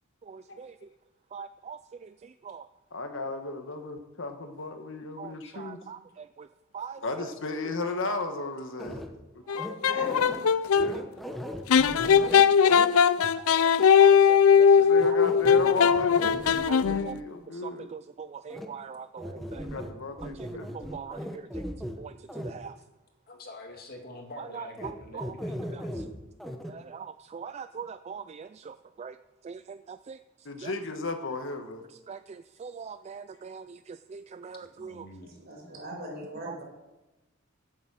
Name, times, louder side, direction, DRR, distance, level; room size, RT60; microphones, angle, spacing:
voice 1, 0.2-0.8 1.3-2.7 5.2-6.5 6.7-7.3 9.8-10.0 10.8-10.9 12.1-12.9 13.4-15.2 15.6-15.7 16.6-16.8 17.0-17.2 17.5-19.7 20.3-20.5 20.7-22.8 24.4-25.3 25.7-26.1 26.7-29.2 29.4-30.2 30.6-30.7 32.1-35.1 36.4-36.5, right 6 dB, 30° right, 12 dB, 0.3 m, -42 dB
voice 2, 2.9-5.8 7.0-9.1 9.3-9.4 10.0-10.4 10.7-11.1 14.8-17.9 19.6-21.0 30.4-31.9, left 3 dB, 65° left, 7 dB, 1.3 m, -35 dB
sound 1, 8.8-9.1 9.5-10.4 10.8-12.9 13.2-13.3 15.0-17.0 18.5-18.7 19.2-19.9 20.2-22.0 22.3-22.5 24.8-24.9 25.2-26.1 26.4-26.7, equal, ahead, 1.0 m, -38 dB
sound 2, 9.5-10.9 11.7-17.2, left 7 dB, 90° left, 0.5 m, -20 dB
voice 3, 9.8-10.2 35.2-36.6, right 1 dB, 50° right, 0 dB, 4.9 m, -40 dB
voice 4, 23.3-26.3 34.6-35.3, left 2 dB, 45° left, 2 dB, 2.2 m, -46 dB
15.5 x 7.3 x 6.2 m, 1.0 s
head